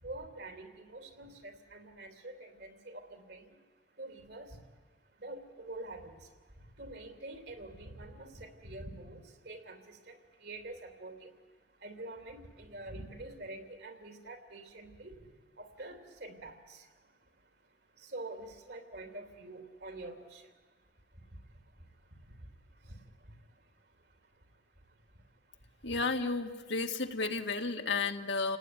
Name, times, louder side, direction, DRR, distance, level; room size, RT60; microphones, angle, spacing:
voice 1, 0.0-3.4 4.0-4.5 5.2-6.1 6.8-9.2 9.4-10.2 10.4-11.3 11.8-15.1 15.6-16.8 18.0-20.4 22.9-23.0 25.9-26.0, right 2 dB, 60° right, 6 dB, 3.2 m, -46 dB
voice 2, 25.8-28.6, left 3 dB, 75° left, 5 dB, 1.8 m, -32 dB
30.0 x 18.5 x 9.7 m, 1.4 s
head